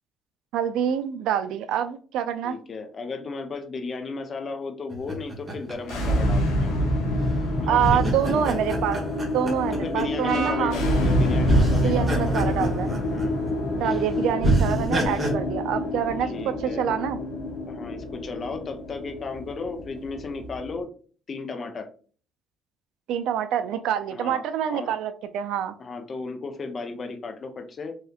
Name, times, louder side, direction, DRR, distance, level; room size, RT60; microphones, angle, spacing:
voice 1, 0.5-2.6 7.7-9.0 9.3-10.8 11.8-12.9 13.7-17.2 23.1-25.8, right 9 dB, 80° right, 10 dB, 0.3 m, -26 dB
voice 2, 2.4-6.9 7.6-8.5 9.7-12.6 13.1-13.5 13.8-14.0 16.2-16.9 17.6-20.9 21.3-21.9 24.1-24.9 25.8-27.9, left 4 dB, 40° left, 5 dB, 0.6 m, -35 dB
sound 1, 4.9-6.9 7.8-10.3 10.9-11.1 11.4-13.5 13.9-14.0 14.4-15.3, right 2 dB, 20° right, 0.9 m, -27 dB
sound 2, 5.8-20.8, left 1 dB, 90° left, 0.8 m, -27 dB
Brass instrument, 10.2-14.4, right 3 dB, 60° right, 0.8 m, -39 dB
3.1 x 2.8 x 2.3 m, 0.41 s
cardioid pair, 105°, 0 cm